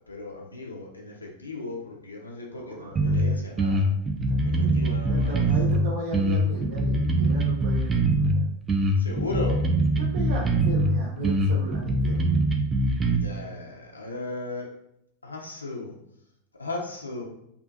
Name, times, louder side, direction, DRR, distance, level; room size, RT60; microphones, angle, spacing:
voice 1, 0.0-3.9 4.4-5.5 9.0-9.6 13.2-14.7 15.2-15.9 16.5-17.2, left 2 dB, 80° left, -1 dB, 0.5 m, -36 dB
voice 2, 2.5-3.4 4.3-8.4 10.0-12.4, right 1 dB, 65° right, -7 dB, 0.7 m, -36 dB
sound 1, 3.0-3.2 3.6-5.8 6.1-8.3 8.7-10.9 11.2-13.2, right 1 dB, 20° right, 0.3 m, -23 dB
2.5 x 2.4 x 2.4 m, 0.75 s
figure-of-eight pair, 90°, 0 cm